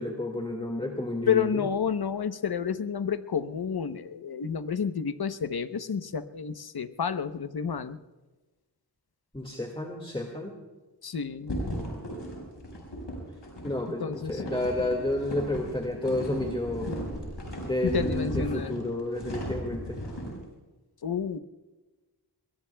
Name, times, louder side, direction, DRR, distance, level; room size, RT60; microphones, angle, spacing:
voice 1, 0.0-1.6 9.3-10.6 13.6-16.9 17.6-20.0, left 1 dB, 15° left, 2 dB, 2.0 m, -31 dB
voice 2, 1.3-8.0 11.0-11.6 14.0-14.4 17.8-18.8 21.0-21.4, left 7 dB, 65° left, 11 dB, 0.9 m, -30 dB
sound 1, 11.5-20.4, equal, 90° left, 5.0 m, -36 dB
22.5 x 21.5 x 2.3 m, 1.2 s
wide cardioid pair, 50°, 41 cm